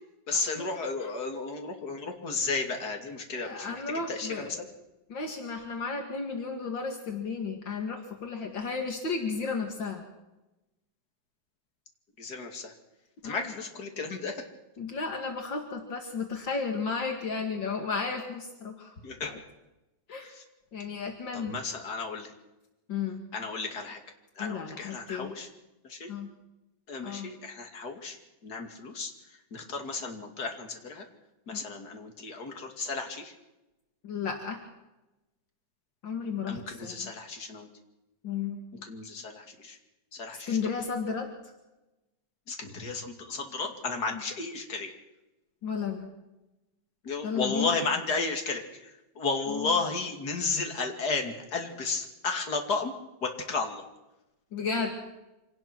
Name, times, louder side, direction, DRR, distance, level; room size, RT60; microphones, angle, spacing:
voice 1, 0.3-4.7 12.2-12.7 13.2-14.4 19.0-19.3 20.3-20.4 21.3-22.3 23.3-24.0 24.4-25.5 25.8-26.1 26.9-28.2 28.4-29.1 29.5-31.0 31.5-33.3 36.5-37.7 38.9-39.8 40.1-40.6 42.5-44.9 47.0-52.9 53.2-53.8, left 4 dB, 55° left, 4 dB, 3.2 m, -33 dB
voice 2, 3.3-4.6 5.1-10.0 13.2-13.5 14.8-18.9 19.2-19.4 20.1-20.3 20.7-21.5 22.9-23.2 24.4-25.3 26.1-26.3 27.0-27.3 31.5-31.6 34.0-34.6 36.0-37.1 38.2-38.7 40.5-41.3 45.6-46.1 47.2-47.8 49.5-49.8 54.5-55.0, left 5 dB, 70° left, 4 dB, 2.9 m, -33 dB
26.5 x 19.0 x 6.2 m, 0.99 s
omnidirectional pair, 2.1 m